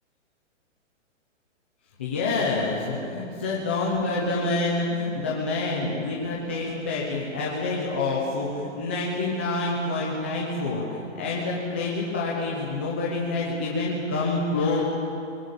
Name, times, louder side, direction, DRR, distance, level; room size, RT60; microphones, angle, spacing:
voice 1, 2.0-14.8, left 3 dB, 10° left, -4 dB, 0.7 m, -27 dB
21.0 x 19.0 x 8.5 m, 2.7 s
hypercardioid pair, 180°, 38 cm